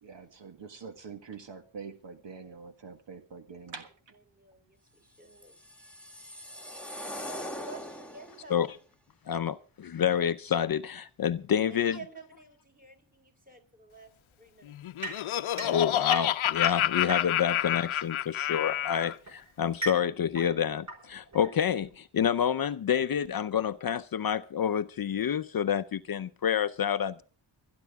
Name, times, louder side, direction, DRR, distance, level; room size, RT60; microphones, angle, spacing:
voice 1, 0.0-4.1, right 5 dB, 65° right, 1.7 m, -45 dB
voice 2, 4.3-5.5 7.3-8.6 11.7-14.1 14.4-14.7, right 3 dB, 15° right, 3.8 m, -50 dB
sound 1, 5.3-8.5, equal, 5° left, 1.6 m, -41 dB
voice 3, 9.3-12.0 15.6-27.2, left 8 dB, 50° left, 0.6 m, -28 dB
Laughter, 14.7-19.1, left 12 dB, 80° left, 0.8 m, -29 dB
sound 2, 15.0-17.6 18.6-22.0, right 2 dB, 35° right, 5.1 m, -40 dB
29.0 x 10.5 x 3.5 m
cardioid pair, 80°, 47 cm